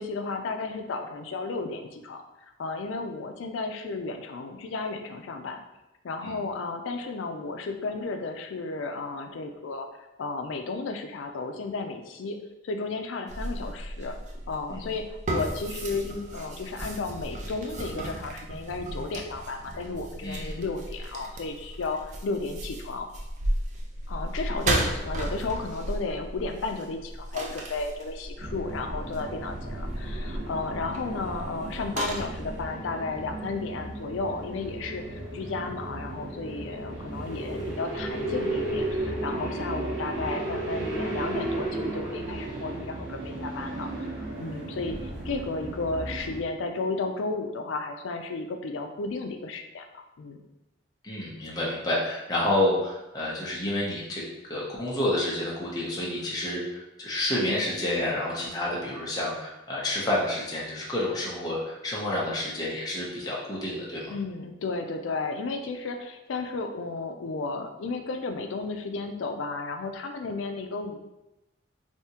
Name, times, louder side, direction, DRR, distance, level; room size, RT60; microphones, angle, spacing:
voice 1, 0.0-5.6 6.0-9.9 10.2-12.4 12.6-14.2 14.5-23.1 24.1-50.4 64.1-71.0, left 3 dB, 90° left, 5 dB, 0.4 m, -33 dB
sound 1, 13.3-32.6, right 1 dB, 40° right, 0.4 m, -34 dB
sound 2, 28.4-46.4, right 2 dB, 75° right, 0.8 m, -34 dB
voice 2, 51.0-54.2 54.5-64.1, left 1 dB, 20° left, -5 dB, 0.7 m, -29 dB
3.4 x 2.7 x 2.8 m, 0.96 s
head